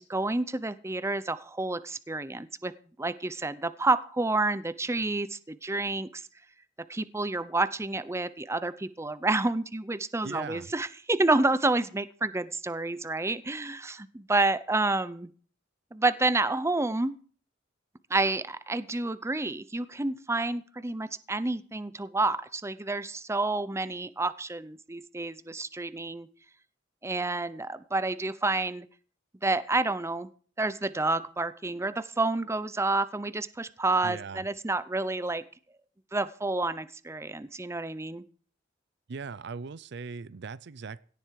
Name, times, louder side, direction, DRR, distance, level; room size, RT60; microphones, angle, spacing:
voice 1, 0.0-2.7 3.0-6.2 6.9-15.3 15.9-17.1 18.1-26.3 27.0-28.9 29.4-30.3 30.6-35.4 36.1-38.2, right 2 dB, 15° right, 15 dB, 0.6 m, -29 dB
voice 2, 10.2-10.7 34.0-34.4 39.1-41.0, right 5 dB, 65° right, 19 dB, 0.5 m, -39 dB
17.0 x 11.0 x 4.7 m, 0.43 s
head